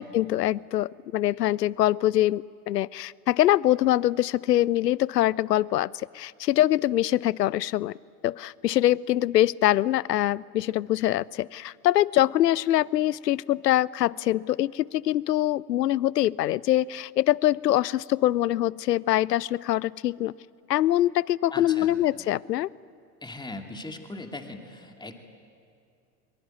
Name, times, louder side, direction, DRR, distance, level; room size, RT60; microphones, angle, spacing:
voice 1, 0.0-8.0 8.2-20.3 20.7-22.7, left 13 dB, 75° left, 25 dB, 0.6 m, -24 dB
voice 2, 21.5-22.0 23.2-25.2, left 2 dB, 10° left, 4 dB, 2.6 m, -39 dB
23.0 x 22.5 x 9.1 m, 2.4 s
figure-of-eight pair, 80°, 49 cm